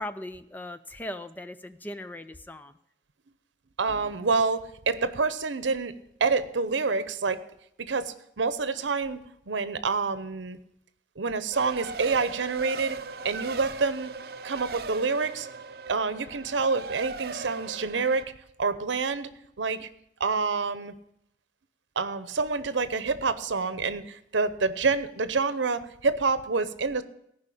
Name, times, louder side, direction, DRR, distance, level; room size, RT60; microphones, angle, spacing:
voice 1, 0.0-2.8, left 1 dB, 10° left, 11 dB, 0.4 m, -38 dB
voice 2, 3.8-5.9 6.2-7.4 7.8-9.2 9.5-10.6 11.2-13.0 13.2-14.1 14.4-15.5 15.9-18.3 18.6-19.3 19.6-19.9 20.2-20.9 22.0-27.0, right 4 dB, 90° right, 14 dB, 0.7 m, -27 dB
Race car auto racing, 11.5-18.2, right 4 dB, 55° right, 0.6 m, -39 dB
15.0 x 5.4 x 8.4 m, 0.77 s
head